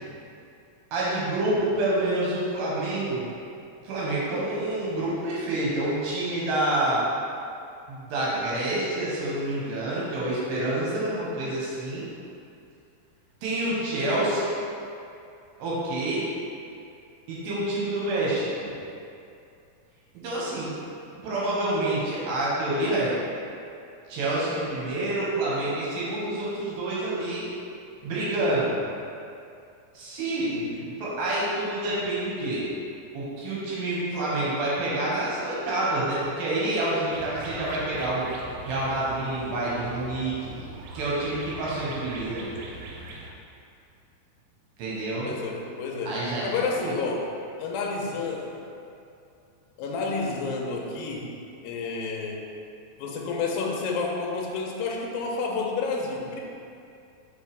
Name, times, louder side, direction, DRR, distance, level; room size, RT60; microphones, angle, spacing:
voice 1, 0.9-3.3 3.8-7.0 7.9-12.1 13.4-14.5 15.6-16.3 17.3-18.7 20.1-20.7 21.2-23.1 24.1-27.5 28.0-28.7 29.9-30.5 31.0-32.6 33.1-38.3 38.6-40.6 40.9-42.5 44.8-45.3 46.1-46.5 46.8-47.0, right 1 dB, 70° right, -7 dB, 2.5 m, -27 dB
voice 2, 30.4-31.0 45.2-47.2 47.6-48.6 49.8-51.3 51.6-52.5 53.0-56.4, left 4 dB, 85° left, -1 dB, 2.1 m, -30 dB
sound 1, 37.1-43.3, right 2 dB, 90° right, 2.8 m, -41 dB
5.6 x 5.1 x 3.4 m, 2.5 s
omnidirectional pair, 4.9 m